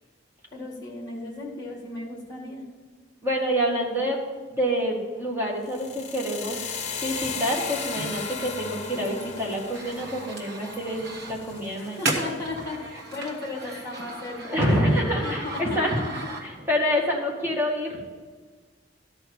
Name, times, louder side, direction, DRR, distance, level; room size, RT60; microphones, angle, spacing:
voice 1, 0.5-2.6 11.8-14.6 15.2-16.1, left 2 dB, 20° left, -1 dB, 1.8 m, -35 dB
voice 2, 3.2-4.2 4.5-6.8 7.0-12.0 14.4-16.0 16.7-18.2, equal, 15° right, -3 dB, 2.0 m, -27 dB
sound 1, 5.6-13.7, left 5 dB, 40° left, 0.8 m, -36 dB
sound 2, 8.0-16.8, right 2 dB, 65° right, 1.5 m, -36 dB
12.5 x 4.6 x 6.9 m, 1.5 s
head